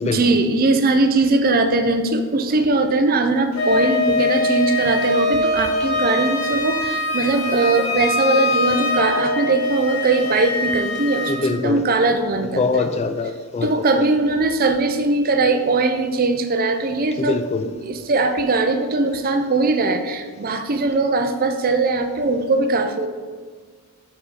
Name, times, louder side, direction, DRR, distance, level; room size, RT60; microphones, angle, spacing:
voice 1, 0.0-12.9 13.6-23.1, right 3 dB, 45° right, 7 dB, 0.5 m, -20 dB
Wind instrument woodwind instrument, 3.5-11.4, left 2 dB, 90° left, 1.9 m, -22 dB
voice 2, 11.3-11.8 12.6-13.7 17.2-17.7, left 3 dB, 30° left, 10 dB, 0.3 m, -23 dB
5.5 x 5.1 x 4.9 m, 1.5 s
head